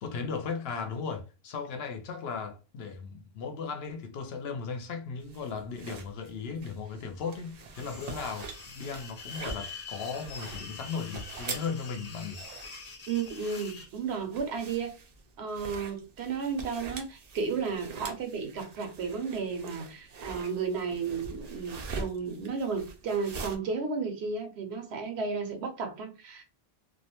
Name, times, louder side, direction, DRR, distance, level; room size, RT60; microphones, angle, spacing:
voice 1, 0.0-12.4, left 5 dB, 75° left, 0.8 m, -36 dB
sound 1, 5.2-23.6, right 4 dB, 55° right, 0.4 m, -44 dB
sound 2, 7.7-13.9, left 4 dB, 45° left, 0.6 m, -45 dB
voice 2, 13.1-14.9 15.4-26.4, right 5 dB, 80° right, 0.9 m, -33 dB
2.4 x 2.1 x 2.8 m
omnidirectional pair, 1.1 m